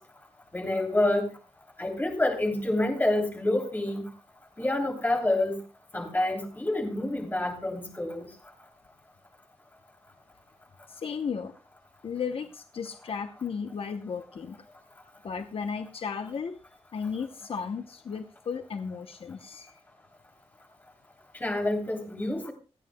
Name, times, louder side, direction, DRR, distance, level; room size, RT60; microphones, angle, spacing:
voice 1, 0.5-1.2 1.8-4.0 4.6-5.5 5.9-8.2 21.4-22.5, left 1 dB, 15° left, 1 dB, 3.0 m, -27 dB
voice 2, 10.9-11.5 12.0-14.6 15.2-16.6 16.9-19.7, left 6 dB, 55° left, 7 dB, 0.8 m, -34 dB
27.0 x 9.6 x 2.2 m, 0.31 s
wide cardioid pair, 150°, 11 cm